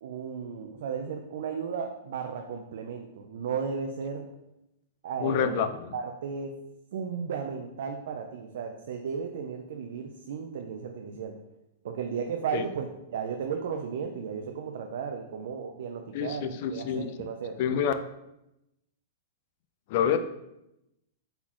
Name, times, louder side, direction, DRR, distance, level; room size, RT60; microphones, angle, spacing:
voice 1, 0.0-4.2 5.0-5.7 5.9-6.5 6.9-11.3 11.8-17.6, right 6 dB, 70° right, 4 dB, 0.4 m, -34 dB
voice 2, 5.2-5.9 12.5-12.7 16.1-17.1 17.6-17.9 19.9-20.2, left 8 dB, 55° left, 10 dB, 0.4 m, -27 dB
4.0 x 3.9 x 3.0 m, 0.87 s
hypercardioid pair, 135°, 0 cm